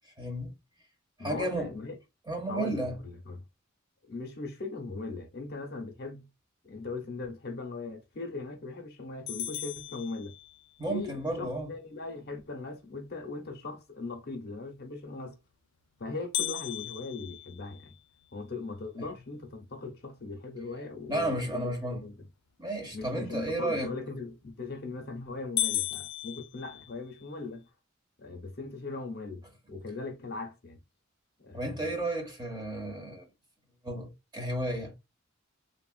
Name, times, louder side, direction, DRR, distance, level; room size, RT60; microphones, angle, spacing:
voice 1, 0.2-0.5 1.2-1.8 2.3-3.0 10.8-11.7 19.0-19.1 21.1-22.1 22.6-23.9 31.5-33.3 33.8-35.0, right 1 dB, 20° right, 0.9 m, -33 dB
voice 2, 1.2-2.0 2.5-3.4 4.1-6.3 6.6-10.3 10.9-15.4 16.0-17.9 18.3-21.7 22.0-22.1 22.9-27.7 28.2-30.8 31.4-31.7, left 3 dB, 50° left, 0.7 m, -39 dB
sound 1, 9.3-10.8 16.3-18.5 19.0-19.1 19.6-19.7 20.4-20.7 24.3-24.7 25.1-25.2 25.6-27.3, left 13 dB, 80° left, 0.4 m, -35 dB
3.2 x 2.3 x 2.3 m
head